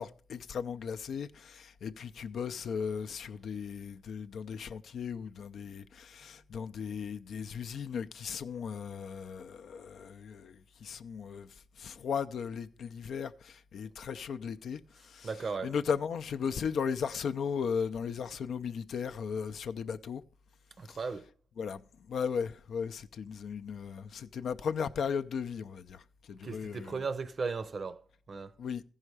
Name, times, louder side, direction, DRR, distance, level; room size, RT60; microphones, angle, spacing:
voice 1, 0.0-15.3 15.6-20.2 20.9-21.0 21.6-21.8 22.1-27.0 28.6-28.8, left 6 dB, 70° left, 0.4 m, -36 dB
voice 2, 15.2-15.7 20.8-21.3 26.4-28.5, right 4 dB, 45° right, 0.6 m, -36 dB
14.5 x 5.5 x 4.8 m
cardioid pair, 110°, 0 cm